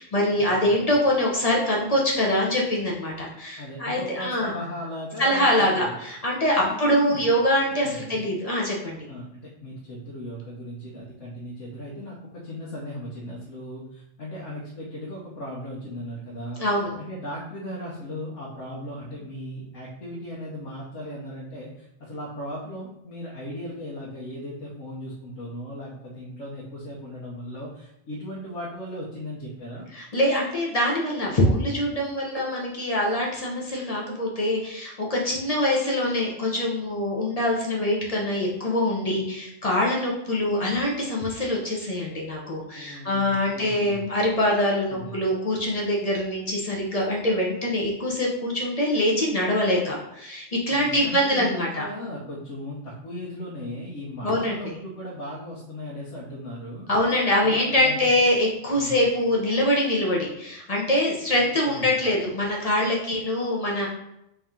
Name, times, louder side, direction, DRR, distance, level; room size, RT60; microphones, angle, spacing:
voice 1, 0.0-4.5 5.2-9.0 16.6-17.0 29.9-51.9 54.2-54.8 56.9-63.9, left 1 dB, 35° left, -3 dB, 0.7 m, -24 dB
voice 2, 3.6-5.9 6.6-7.3 7.8-8.3 9.1-16.6 17.0-29.8 42.7-44.1 44.9-45.1 50.7-56.9 57.4-58.0 58.7-59.0 61.7-61.9, equal, 75° left, -5 dB, 1.2 m, -37 dB
3.5 x 2.8 x 3.6 m, 0.81 s
omnidirectional pair, 1.3 m